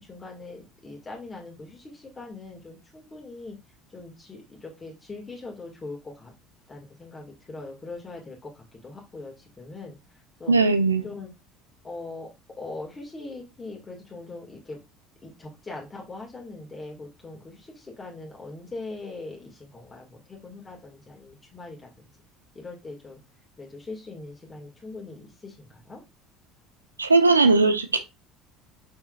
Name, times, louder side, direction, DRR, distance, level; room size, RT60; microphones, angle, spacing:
voice 1, 0.0-3.6 3.9-6.3 6.7-10.5 11.0-11.3 11.8-12.3 12.6-14.8 15.2-21.9 22.5-23.2 23.6-26.0, left 3 dB, 20° left, 2.2 m, -41 dB
voice 2, 10.5-11.0 27.0-28.0, right 3 dB, 85° right, 0.8 m, -19 dB
6.5 x 5.6 x 2.5 m
figure-of-eight pair, 65°, 0 cm